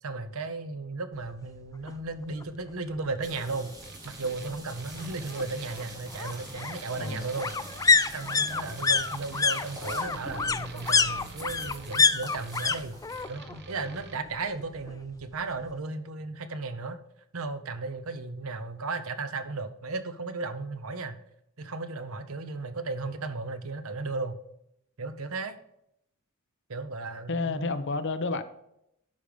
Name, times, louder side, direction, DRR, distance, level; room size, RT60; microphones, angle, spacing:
voice 1, 0.0-3.7 4.0-7.6 8.1-13.0 13.3-17.0 17.3-21.2 21.6-24.3 25.0-25.6 26.7-27.7, right 3 dB, 90° right, 0.9 m, -35 dB
sound 1, 1.9-2.0 2.3-2.4 2.7-3.7 5.0-12.8 13.0-13.6 13.9-14.9 15.2-15.3, left 5 dB, 15° left, 0.3 m, -27 dB
sound 2, 3.2-13.2, right 1 dB, 20° right, 2.7 m, -45 dB
sound 3, 3.8-14.2, right 4 dB, 55° right, 1.0 m, -48 dB
voice 2, 7.0-7.3 27.3-28.4, left 3 dB, 60° left, 0.8 m, -30 dB
11.0 x 5.2 x 5.1 m
head